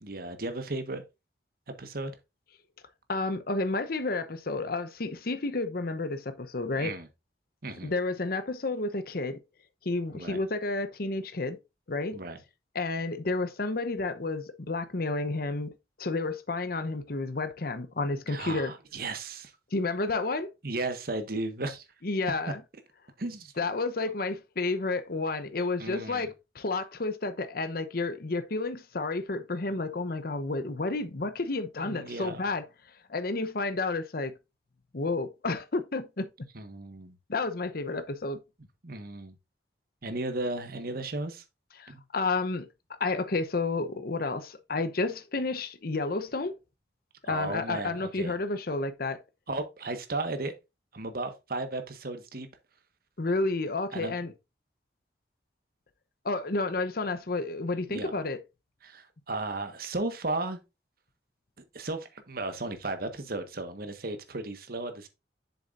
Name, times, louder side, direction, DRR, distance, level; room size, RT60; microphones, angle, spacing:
voice 1, 0.0-1.0 1.7-2.1 6.8-7.1 7.6-7.9 10.1-10.4 12.1-12.4 18.3-19.5 20.6-21.9 23.2-23.5 25.8-26.3 31.8-32.4 36.5-37.2 38.8-39.3 40.0-41.4 41.9-42.0 47.2-48.3 49.5-50.5 50.9-52.5 53.9-54.2 57.9-58.1 58.8-60.6 61.7-65.1, right 2 dB, 55° right, 1.4 m, -35 dB
voice 2, 3.1-7.0 7.8-9.4 9.8-11.6 11.9-12.2 12.7-15.7 16.0-18.7 19.7-20.5 22.0-22.6 23.6-32.7 33.1-34.3 34.9-36.3 37.3-38.4 41.8-42.7 43.0-46.5 47.3-49.2 53.2-54.3 56.2-58.4, left 3 dB, 60° left, 0.9 m, -31 dB
7.7 x 7.0 x 2.6 m
head